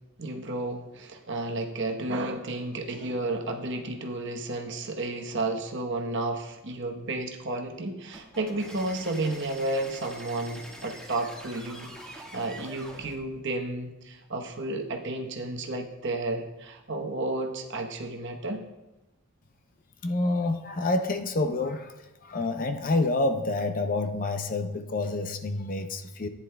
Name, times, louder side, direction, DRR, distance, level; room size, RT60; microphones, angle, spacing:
voice 1, 0.2-18.6, right 2 dB, 55° right, 3 dB, 1.0 m, -32 dB
sound 1, 8.1-13.2, right 1 dB, 5° left, 1.5 m, -44 dB
voice 2, 20.0-21.9 22.2-26.3, left 2 dB, 40° left, 7 dB, 0.6 m, -28 dB
14.5 x 9.8 x 2.3 m, 1.0 s
head